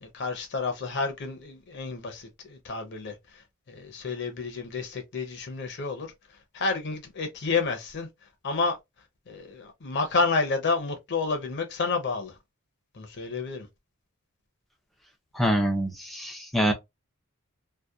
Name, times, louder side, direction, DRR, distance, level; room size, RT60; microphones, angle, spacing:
voice 1, 0.0-3.4 3.7-6.1 6.5-8.1 8.4-8.8 9.3-12.4 12.9-13.7, left 4 dB, 50° left, 0.6 m, -30 dB
voice 2, 15.3-16.7, equal, ahead, 0.6 m, -25 dB
2.7 x 2.1 x 2.3 m
head